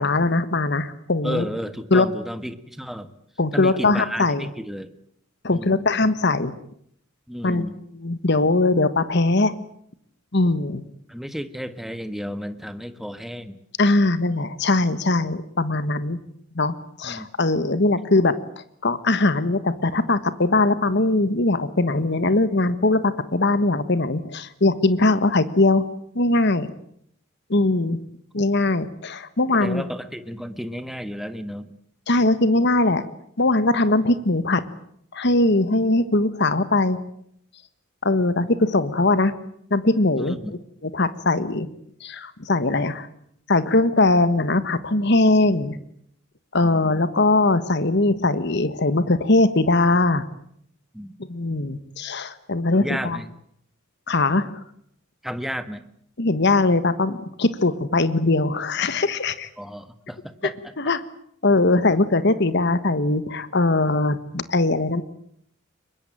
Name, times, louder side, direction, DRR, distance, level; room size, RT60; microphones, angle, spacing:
voice 1, 0.0-1.4 1.9-2.0 3.4-4.5 5.4-6.5 7.4-7.7 8.0-9.5 10.3-10.8 13.8-16.2 16.5-25.8 26.1-26.7 27.5-28.0 28.3-29.8 32.1-33.0 33.4-34.6 35.1-37.0 38.0-39.3 39.7-40.4 40.8-41.7 42.0-43.1 43.5-45.8 46.5-50.3 51.3-53.2 54.1-54.5 56.2-59.5 60.8-61.0 61.4-65.0, left 2 dB, 55° left, 14 dB, 1.4 m, -21 dB
voice 2, 1.2-3.1 3.5-4.9 5.5-5.9 7.3-7.8 11.1-13.6 17.0-17.3 29.6-31.8 40.2-40.5 46.6-46.8 50.9-51.1 52.7-53.3 55.2-55.8 59.6-60.7, equal, ahead, 11 dB, 1.4 m, -32 dB
23.5 x 22.0 x 9.1 m, 0.69 s
head